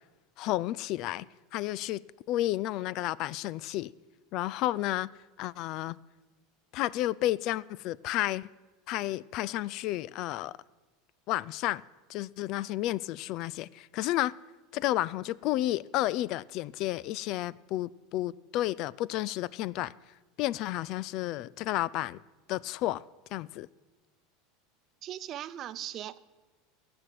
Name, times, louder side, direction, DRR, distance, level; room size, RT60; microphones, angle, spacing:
voice 1, 0.4-1.3 1.5-2.0 2.3-3.9 4.3-5.1 5.4-6.0 6.7-8.5 8.9-10.5 11.3-11.8 12.1-14.3 14.7-19.9 20.4-22.2 22.5-23.0 23.3-23.7, left 15 dB, 55° left, 0.4 m, -31 dB
voice 2, 25.0-26.2, right 11 dB, 45° right, 0.7 m, -39 dB
16.0 x 6.2 x 9.3 m
hypercardioid pair, 100°, 0 cm